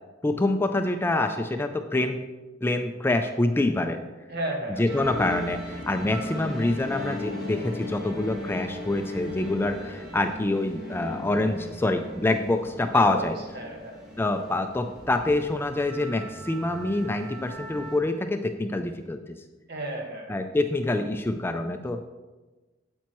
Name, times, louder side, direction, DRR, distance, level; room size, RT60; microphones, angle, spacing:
voice 1, 0.2-2.3 2.6-4.0 4.7-13.4 14.2-19.4 20.3-22.1, left 2 dB, 10° left, 6 dB, 0.4 m, -26 dB
voice 2, 4.3-5.1 12.9-13.2 13.5-14.0 19.7-20.3, right 1 dB, 60° right, 1 dB, 1.5 m, -34 dB
sound 1, 4.9-18.0, left 1 dB, 5° right, 2.9 m, -38 dB
8.9 x 8.2 x 3.0 m, 1.2 s
head